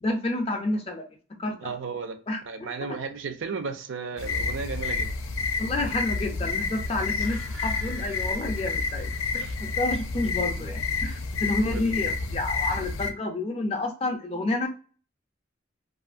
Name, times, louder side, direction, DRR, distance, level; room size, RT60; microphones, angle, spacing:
voice 1, 0.0-1.1 1.4-1.8 2.3-3.0 5.6-14.7, left 2 dB, 30° left, 0.4 m, -30 dB
voice 2, 1.6-2.2 2.5-5.1 9.4-9.6 11.6-12.1, right 4 dB, 70° right, 0.4 m, -34 dB
sound 1, 4.2-13.1, left 4 dB, 90° left, 0.4 m, -29 dB
sound 2, 6.8-9.2 9.5-9.6, right 2 dB, 90° right, 0.9 m, -47 dB
2.7 x 2.4 x 2.4 m
head